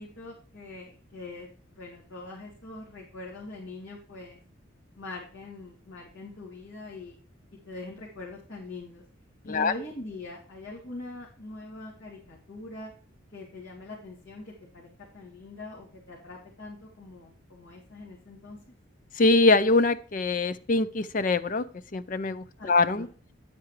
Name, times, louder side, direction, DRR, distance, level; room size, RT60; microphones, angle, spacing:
voice 1, 0.0-4.4 4.9-7.2 7.7-9.0 9.4-12.9 13.3-18.6 22.6-23.1, left 2 dB, 80° left, -5 dB, 2.8 m, -43 dB
voice 2, 19.2-21.6 21.9-23.1, left 3 dB, 40° left, 14 dB, 0.5 m, -23 dB
10.5 x 8.5 x 3.2 m, 0.41 s
head